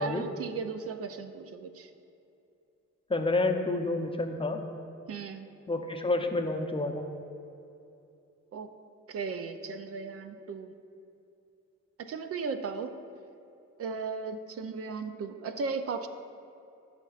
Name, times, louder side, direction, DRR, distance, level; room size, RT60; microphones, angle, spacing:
voice 1, 0.0-1.9 5.1-5.5 8.5-8.7 9.1-10.7 12.0-12.9 13.8-16.1, right 5 dB, 50° right, 8 dB, 0.5 m, -36 dB
voice 2, 3.1-4.6 5.7-7.0, left 2 dB, 20° left, 4 dB, 0.6 m, -29 dB
13.0 x 5.7 x 2.4 m, 2.7 s
cardioid pair, 90°, 30 cm